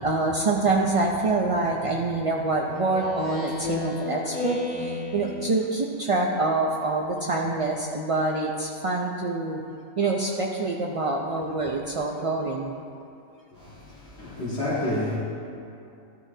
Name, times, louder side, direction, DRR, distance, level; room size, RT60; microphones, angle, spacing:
voice 1, 0.0-9.6 10.0-12.7, right 3 dB, 45° right, -1 dB, 0.4 m, -26 dB
Speech synthesizer, 2.7-5.7, left 3 dB, 80° left, 2.3 m, -32 dB
voice 2, 13.6-15.2, left 1 dB, 55° left, -11 dB, 2.1 m, -29 dB
13.5 x 12.5 x 2.7 m, 2.6 s
omnidirectional pair, 1.4 m